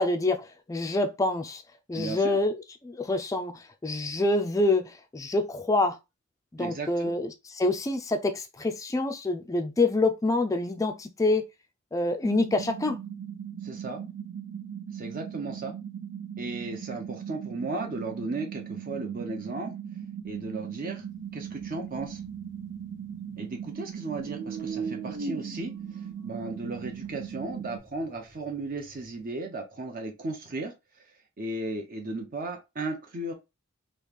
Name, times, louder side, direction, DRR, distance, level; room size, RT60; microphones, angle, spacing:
voice 1, 0.0-1.6 1.9-2.6 2.8-6.0 6.5-7.3 7.5-11.4 11.9-13.0, left 2 dB, 15° left, 0.3 m, -26 dB
voice 2, 1.9-2.4 6.6-7.1 13.6-14.0 14.9-15.7 16.4-19.8 20.2-21.0 21.3-22.2 23.4-33.3, right 2 dB, 40° right, 0.6 m, -35 dB
sound 1, 12.2-27.8, right 8 dB, 80° right, 0.6 m, -39 dB
sound 2, 21.1-23.7 24.0-29.3, right 4 dB, 60° right, 1.1 m, -41 dB
3.1 x 2.4 x 3.4 m
head